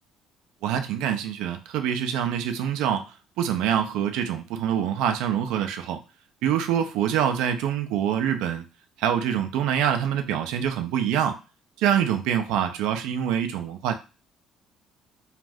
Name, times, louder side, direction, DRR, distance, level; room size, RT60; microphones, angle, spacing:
voice 1, 0.6-6.0 6.4-8.6 9.0-11.4 11.8-13.9, right 9 dB, 75° right, 0.5 m, -25 dB
2.5 x 2.4 x 3.3 m
hypercardioid pair, 55°, 0 cm